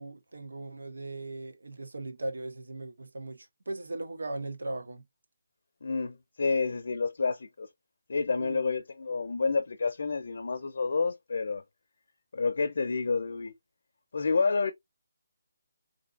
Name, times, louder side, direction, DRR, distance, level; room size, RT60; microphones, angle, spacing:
voice 1, 0.0-5.0 8.4-8.6, right 2 dB, 80° right, 1.2 m, -38 dB
voice 2, 5.8-7.7 8.1-11.6 12.3-13.5 14.1-14.7, left 4 dB, 45° left, 0.5 m, -29 dB
3.3 x 2.6 x 3.9 m
hypercardioid pair, 180°, 0 cm